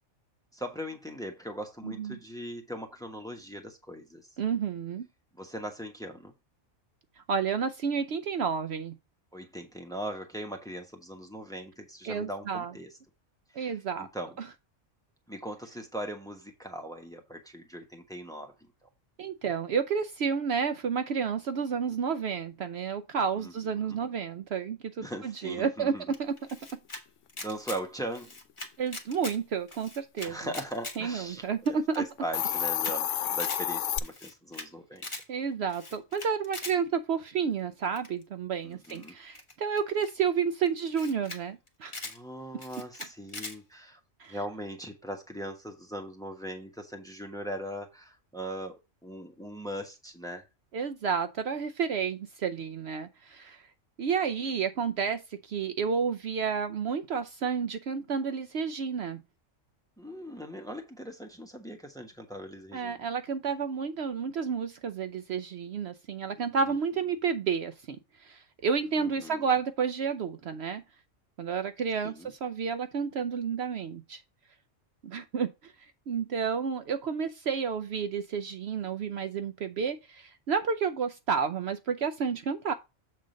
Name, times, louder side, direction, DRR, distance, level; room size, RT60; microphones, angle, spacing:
voice 1, 0.5-4.3 5.3-6.3 9.3-12.9 13.5-14.4 15.3-18.7 23.4-24.0 25.0-26.0 27.4-28.3 30.2-35.1 38.6-39.2 42.0-44.0 44.3-48.7 49.0-50.4 60.0-63.0 69.0-69.4 72.0-72.3, equal, 5° left, 1.1 m, -40 dB
voice 2, 1.8-2.2 4.4-5.1 7.3-9.0 12.0-12.7 13.6-14.1 14.4-14.5 19.2-26.4 28.8-30.4 31.0-32.0 35.3-42.0 44.2-44.4 50.7-53.7 54.0-59.2 62.7-70.8 71.4-74.2 75.0-75.7 76.1-82.7, right 6 dB, 65° right, 0.8 m, -31 dB
Camera, 26.1-27.0 27.3-27.8 28.1-29.4 29.7-31.0 31.3-31.4 31.7-31.8 31.9-32.0 32.3-32.9 33.2-33.6 34.0-34.7 35.0-35.2 35.7-36.8 38.0-38.2 38.8-40.1 40.7-40.8 40.9-41.4 41.7-42.2 42.6-43.6, left 2 dB, 25° left, 1.3 m, -41 dB
Hiss, 32.2-34.0, left 10 dB, 75° left, 0.9 m, -29 dB
7.6 x 3.8 x 5.1 m
omnidirectional pair, 1.3 m